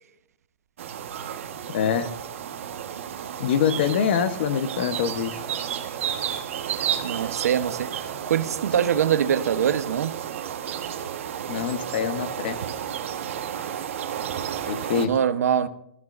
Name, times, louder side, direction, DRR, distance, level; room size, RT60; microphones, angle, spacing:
sound 1, 0.8-15.1, right 9 dB, 60° right, 1.4 m, -32 dB
voice 1, 1.7-2.1 3.4-5.4 11.5-12.6 14.7-15.1, left 8 dB, 40° left, 1.1 m, -25 dB
voice 2, 7.0-10.1 15.0-15.7, right 9 dB, 85° right, 1.1 m, -23 dB
23.5 x 14.5 x 2.6 m
hypercardioid pair, 175°, 8 cm